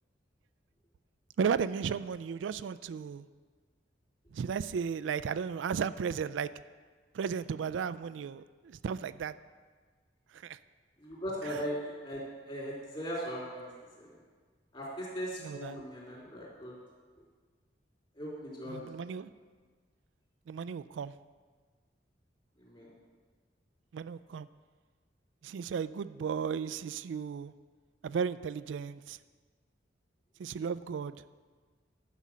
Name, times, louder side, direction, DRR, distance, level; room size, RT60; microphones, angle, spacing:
voice 1, 1.4-3.3 4.3-6.5 7.1-9.3 10.3-10.6 15.4-15.8 18.7-19.3 20.5-21.1 23.9-24.5 25.4-27.5 28.0-29.2 30.4-31.2, right 6 dB, 85° right, 14 dB, 0.3 m, -34 dB
voice 2, 11.0-13.7 14.0-14.2 14.7-16.8 18.1-18.9 22.6-22.9, equal, 30° left, -5 dB, 3.4 m, -39 dB
11.5 x 5.6 x 7.3 m, 1.5 s
head